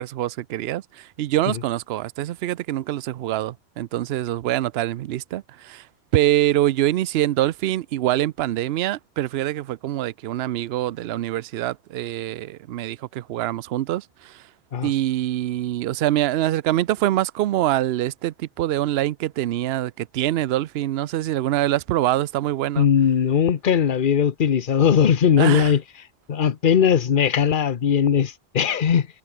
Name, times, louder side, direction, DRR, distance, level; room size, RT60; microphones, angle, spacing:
voice 1, 0.0-5.9 6.1-14.5 14.8-22.9 25.4-25.7, right 14 dB, 70° right, 0.8 m, -24 dB
voice 2, 22.8-25.8 26.3-29.1, left 8 dB, 50° left, 1.0 m, -19 dB
omnidirectional pair, 1.2 m